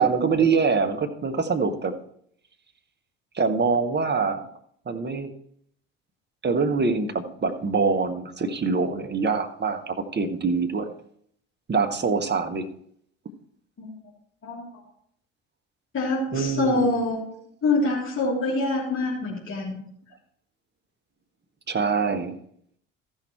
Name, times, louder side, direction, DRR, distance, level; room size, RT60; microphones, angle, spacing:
voice 1, 0.0-1.9 3.3-4.5 4.9-5.3 6.4-10.9 11.7-12.7 16.3-16.9 21.7-22.3, right 5 dB, 30° right, 5 dB, 1.5 m, -24 dB
voice 2, 15.9-17.2 17.6-19.8, left 2 dB, 35° left, -5 dB, 3.5 m, -25 dB
14.0 x 6.6 x 4.5 m, 0.67 s
figure-of-eight pair, 50°, 37 cm